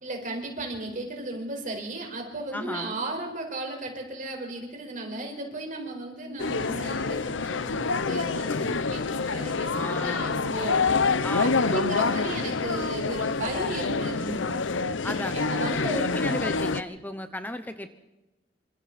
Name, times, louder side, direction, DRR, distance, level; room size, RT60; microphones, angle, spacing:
voice 1, 0.0-10.9 11.4-14.6 15.3-16.0, right 2 dB, 45° right, 2 dB, 5.0 m, -35 dB
voice 2, 2.5-3.0 9.7-10.4 11.2-11.8 15.0-17.9, left 1 dB, 10° left, 9 dB, 0.9 m, -34 dB
sound 1, 6.4-16.8, left 4 dB, 75° left, 0.8 m, -27 dB
27.5 x 25.5 x 4.3 m, 1.0 s
head